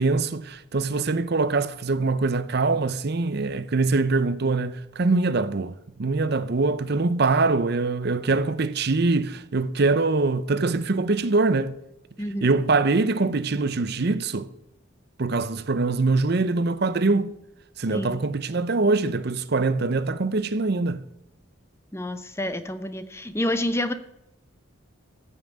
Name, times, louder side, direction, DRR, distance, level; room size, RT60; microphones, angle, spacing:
voice 1, 0.0-11.7 12.4-14.5 15.2-17.3 17.8-21.1, right 3 dB, 50° right, 0.6 m, -23 dB
voice 2, 17.9-18.2 21.9-23.9, left 1 dB, 10° left, 0.7 m, -28 dB
14.5 x 5.6 x 8.4 m
head